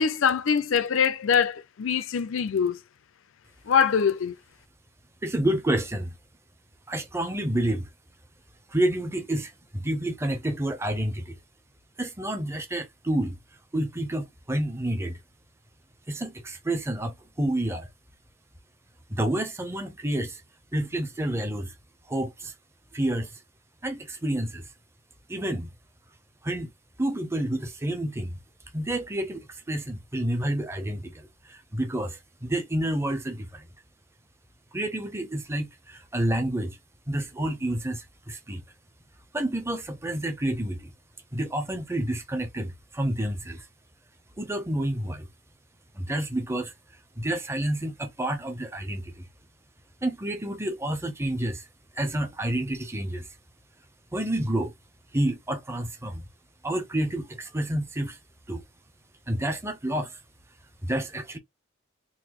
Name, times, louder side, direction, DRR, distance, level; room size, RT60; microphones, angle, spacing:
voice 1, 0.0-2.8 3.7-4.3, left 6 dB, 65° left, 0.4 m, -23 dB
voice 2, 5.2-6.1 6.9-7.9 8.7-11.4 12.0-13.4 13.7-15.2 16.1-17.9 19.1-20.4 20.7-21.7 22.1-22.5 22.9-23.3 23.8-24.7 25.3-25.7 26.4-26.7 27.0-28.4 28.7-29.4 29.7-33.7 34.7-36.8 37.1-38.6 39.3-40.9 41.3-43.7 44.4-45.3 45.9-46.7 47.2-49.3 50.0-51.6 51.9-53.3 54.1-54.7 55.1-56.2 56.6-58.2 58.5-58.6 59.3-60.2 60.8-61.4, right 1 dB, 10° right, 0.7 m, -29 dB
3.9 x 2.5 x 3.0 m
head